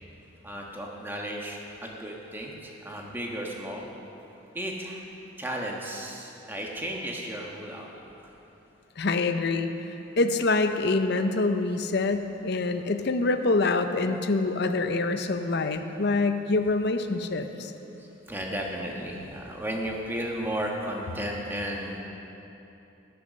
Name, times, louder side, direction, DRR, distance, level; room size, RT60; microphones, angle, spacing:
voice 1, 0.4-3.9 4.5-5.0 5.4-8.3 18.0-22.0, equal, 10° right, -1 dB, 1.3 m, -34 dB
voice 2, 9.0-9.7 10.2-17.7, left 3 dB, 50° left, 8 dB, 0.7 m, -25 dB
16.5 x 6.9 x 6.6 m, 3.0 s
head